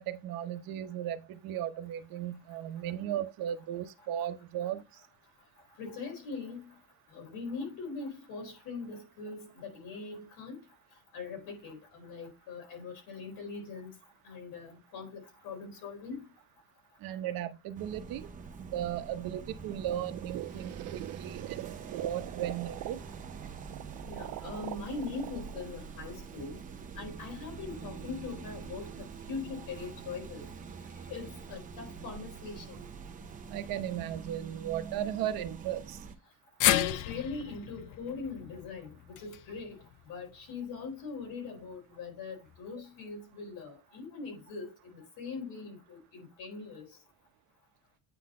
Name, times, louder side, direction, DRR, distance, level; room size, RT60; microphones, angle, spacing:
voice 1, 0.0-5.0 17.0-18.3 18.6-23.0 33.5-36.0, right 11 dB, 80° right, 1.0 m, -36 dB
voice 2, 5.8-6.6 7.1-10.6 11.1-14.0 14.2-16.3 24.0-26.6 27.0-30.5 31.1-32.8 36.6-47.0, left 4 dB, 75° left, 4.1 m, -41 dB
sound 1, 17.7-36.1, right 5 dB, 25° right, 0.7 m, -45 dB
sound 2, 19.9-26.8, right 16 dB, 60° right, 0.5 m, -43 dB
sound 3, 36.6-40.9 41.2-41.3 42.5-42.6, left 13 dB, 60° left, 0.6 m, -33 dB
8.9 x 3.9 x 3.7 m
cardioid pair, 170°, 35 cm